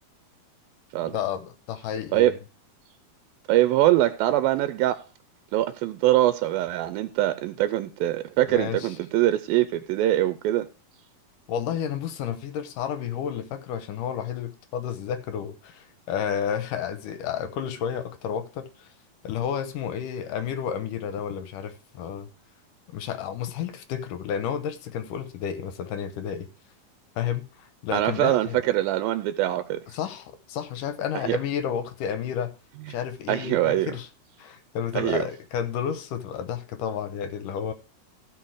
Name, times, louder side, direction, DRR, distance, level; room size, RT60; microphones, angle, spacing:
voice 1, 1.1-2.3 8.5-9.0 11.5-18.9 19.2-22.3 22.9-26.5 27.2-28.6 29.9-32.6 32.9-34.1 34.4-37.7, left 8 dB, 75° left, 2.4 m, -31 dB
voice 2, 3.5-5.0 5.5-10.7 27.9-29.8 31.1-31.4 32.9-33.0 33.3-33.9 35.0-35.3, right 14 dB, 90° right, 2.5 m, -23 dB
16.0 x 5.4 x 4.7 m
omnidirectional pair, 4.1 m